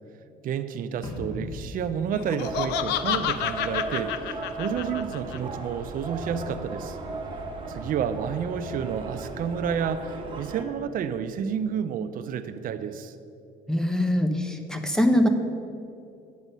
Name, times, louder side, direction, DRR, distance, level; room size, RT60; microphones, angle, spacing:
voice 1, 0.4-7.0 7.7-13.2, right 7 dB, 55° right, 9 dB, 0.5 m, -30 dB
sound 1, 1.0-3.5, left 1 dB, 25° left, 1.7 m, -39 dB
Laughter, 2.1-5.4, left 11 dB, 85° left, 0.5 m, -29 dB
sound 2, 2.4-10.6, right 2 dB, 30° right, 1.4 m, -36 dB
voice 2, 13.7-15.3, left 1 dB, 5° left, 5 dB, 1.0 m, -23 dB
9.5 x 7.2 x 5.5 m, 2.7 s
cardioid pair, 110°, 17 cm